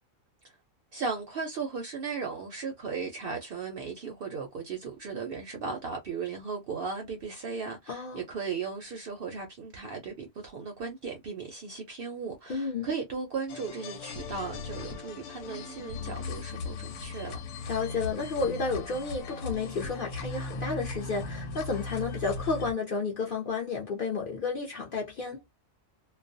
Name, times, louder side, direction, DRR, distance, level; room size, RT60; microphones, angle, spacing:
voice 1, 0.9-17.4, right 5 dB, 65° right, 0.6 m, -36 dB
voice 2, 7.9-8.2 12.5-12.9 17.7-25.4, left 4 dB, 55° left, 0.6 m, -31 dB
sound 1, 13.5-22.7, left 4 dB, 90° left, 1.0 m, -38 dB
2.3 x 2.1 x 2.5 m
omnidirectional pair, 1.4 m